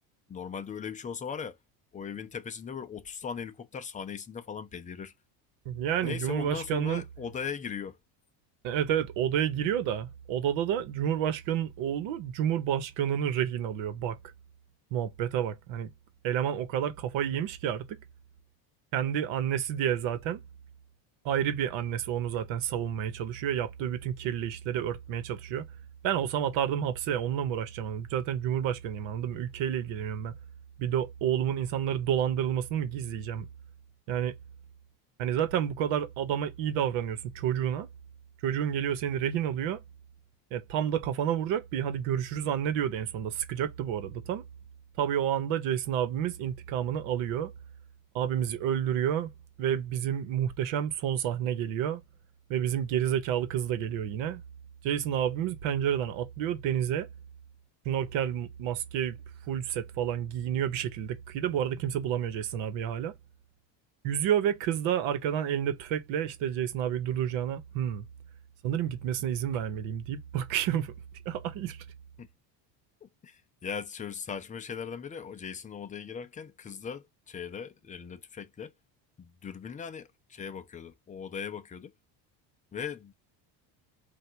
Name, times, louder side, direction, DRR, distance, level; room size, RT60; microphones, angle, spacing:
voice 1, 0.3-1.6 1.9-5.1 6.0-8.0 72.2-72.3 73.0-78.7 79.2-81.9 82.7-83.1, left 6 dB, 15° left, 0.4 m, -39 dB
voice 2, 5.7-7.0 8.6-14.2 14.9-15.9 16.2-18.0 18.9-20.4 21.2-25.7 26.0-30.3 30.8-33.5 34.1-34.4 35.2-37.9 38.4-39.8 40.5-44.4 45.0-47.5 48.1-49.3 49.6-52.0 52.5-54.4 54.8-57.1 57.8-59.2 59.5-63.1 64.0-68.0 68.6-70.9 71.2-71.8, right 9 dB, 70° right, 1.1 m, -30 dB
3.4 x 2.5 x 4.4 m
cardioid pair, 125°, 49 cm